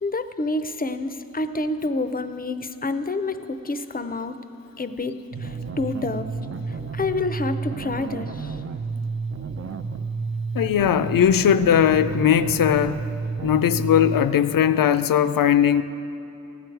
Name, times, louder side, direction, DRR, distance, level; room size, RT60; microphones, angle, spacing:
voice 1, 0.0-4.4 4.8-6.3 6.7-8.6, left 2 dB, 25° left, 10 dB, 0.5 m, -28 dB
sound 1, 5.3-14.3, right 4 dB, 45° right, 0.5 m, -31 dB
voice 2, 10.5-13.0 13.4-15.8, left 9 dB, 80° left, 12 dB, 0.5 m, -19 dB
15.5 x 9.2 x 4.6 m, 2.8 s
wide cardioid pair, 105°, 33 cm